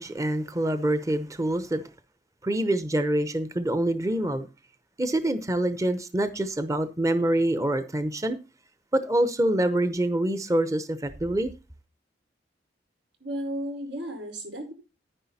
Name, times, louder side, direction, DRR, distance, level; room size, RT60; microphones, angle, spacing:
voice 1, 0.0-1.8 2.4-4.5 5.0-8.4 8.9-11.5, right 1 dB, 20° right, 0.8 m, -26 dB
voice 2, 13.2-14.7, equal, 85° right, 5.0 m, -34 dB
10.5 x 10.0 x 4.1 m
head